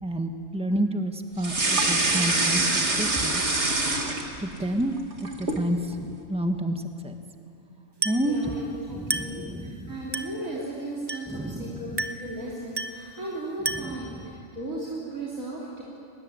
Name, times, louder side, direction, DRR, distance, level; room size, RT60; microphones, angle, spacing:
voice 1, 0.0-3.4 4.4-4.9 5.2-7.2 8.0-8.4 8.9-10.0 11.3-12.0 13.7-14.0, right 1 dB, 5° right, 5 dB, 1.5 m, -30 dB
sound 1, 1.4-4.6 5.0-5.7, right 2 dB, 55° right, 2.6 m, -24 dB
Glass, 8.0-8.4 9.1-9.5 10.1-10.4 11.1-11.4 12.0-12.3 12.8-13.1 13.7-14.1, right 2 dB, 20° right, 1.1 m, -31 dB
voice 2, 8.0-15.8, right 2 dB, 75° right, -5 dB, 3.9 m, -36 dB
24.0 x 21.0 x 9.9 m, 2.5 s
omnidirectional pair, 1.4 m